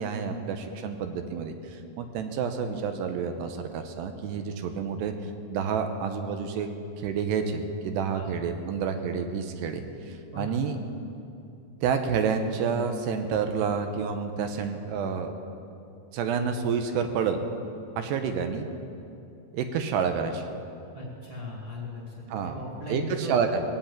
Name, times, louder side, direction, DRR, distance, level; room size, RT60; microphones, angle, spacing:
voice 1, 0.0-5.1 5.5-6.7 7.0-10.8 11.8-15.3 16.1-17.4 18.0-18.7 19.5-20.5 22.3-22.6 22.9-23.6, right 6 dB, 80° right, 7 dB, 2.9 m, -29 dB
voice 2, 20.9-23.4, left 1 dB, 35° right, -4 dB, 2.7 m, -38 dB
18.5 x 8.0 x 8.6 m, 2.7 s
omnidirectional pair, 4.9 m